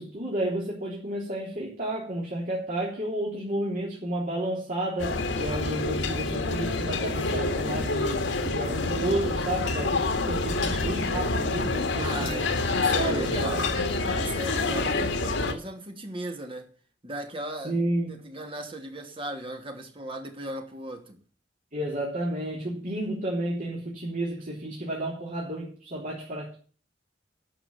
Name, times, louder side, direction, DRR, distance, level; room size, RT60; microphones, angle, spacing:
voice 1, 0.0-12.3 12.9-13.7 14.7-15.1 17.6-18.2 21.7-26.6, right 1 dB, 45° right, 3.6 m, -32 dB
sound 1, 5.0-15.5, left 3 dB, 75° left, 1.9 m, -27 dB
voice 2, 12.0-13.7 14.1-16.7 17.0-17.8 18.1-21.2, right 1 dB, 30° right, 2.6 m, -37 dB
12.5 x 6.1 x 9.2 m
head